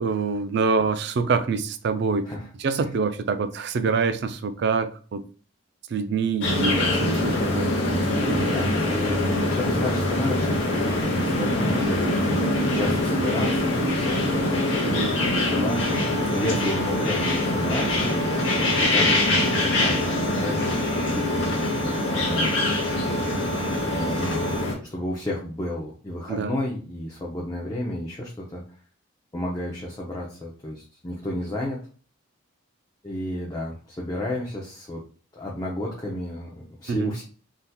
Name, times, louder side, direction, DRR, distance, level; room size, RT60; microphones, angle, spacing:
voice 1, 0.0-2.3 2.6-5.2 5.9-7.7 14.8-15.1 26.3-26.6 36.9-37.1, right 5 dB, 50° right, 0.3 m, -25 dB
sound 1, 6.4-24.7, left 1 dB, 60° left, 0.9 m, -24 dB
voice 2, 8.2-12.4 12.7-16.0 16.3-18.3 18.8-22.5 24.0-24.5 24.9-28.6 29.3-31.8 33.0-35.0 35.3-37.2, left 1 dB, 20° left, 0.5 m, -32 dB
sound 2, 15.7-24.6, right 6 dB, 75° right, 0.7 m, -37 dB
3.5 x 2.8 x 2.2 m
head